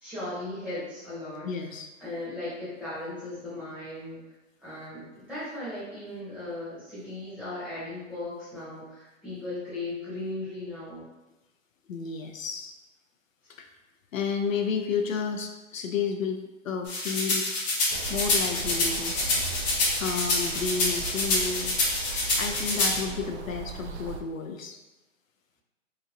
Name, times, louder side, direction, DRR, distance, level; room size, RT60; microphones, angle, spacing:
voice 1, 0.0-1.5 2.0-4.3 4.6-11.1, left 2 dB, 5° right, -12 dB, 0.9 m, -37 dB
voice 2, 1.4-1.9 11.9-12.7 13.6-13.7 14.1-16.4 16.6-17.4 18.1-19.4 20.0-21.7 22.4-24.8, left 6 dB, 75° left, 4 dB, 0.5 m, -31 dB
sound 1, 16.9-23.0, left 2 dB, 35° left, 0.8 m, -27 dB
sound 2, 17.9-24.2, right 4 dB, 60° right, 0.5 m, -38 dB
2.9 x 2.6 x 2.5 m, 1.0 s
hypercardioid pair, 140°, 40 cm